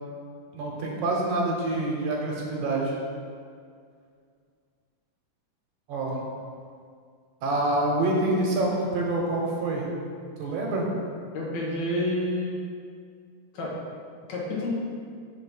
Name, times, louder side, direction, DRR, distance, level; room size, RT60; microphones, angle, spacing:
voice 1, 0.5-3.0 5.9-6.2 7.4-9.9 10.4-10.9, right 2 dB, 65° right, -2 dB, 2.3 m, -26 dB
voice 2, 11.3-12.5 13.5-13.7 14.3-14.7, left 1 dB, 60° left, -4 dB, 2.3 m, -28 dB
6.6 x 4.2 x 5.6 m, 2.2 s
omnidirectional pair, 4.0 m